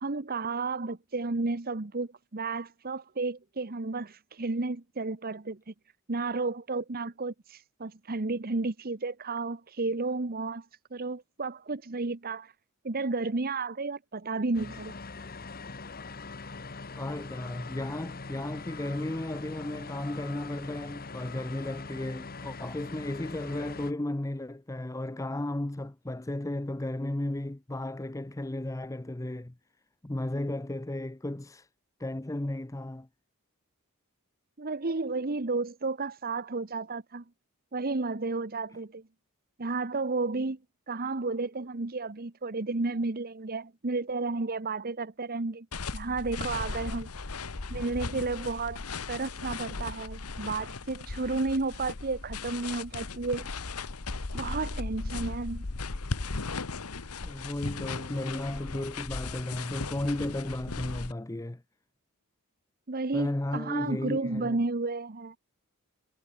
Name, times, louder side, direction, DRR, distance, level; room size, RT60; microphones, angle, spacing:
voice 1, 0.0-5.7 6.1-10.7 10.9-12.5 12.8-15.0 34.6-37.2 37.7-39.0 39.6-40.6 40.9-45.7 45.9-47.1 47.7-53.5 54.3-55.6 62.9-65.4, right 3 dB, 45° right, 1.0 m, -32 dB
sound 1, 14.5-23.9, left 3 dB, 45° left, 1.5 m, -42 dB
voice 2, 17.0-29.5 30.0-31.7 32.0-33.1 57.2-61.6 63.1-64.6, left 1 dB, 15° left, 0.6 m, -34 dB
sound 2, 45.7-61.1, left 3 dB, 90° left, 1.4 m, -37 dB
head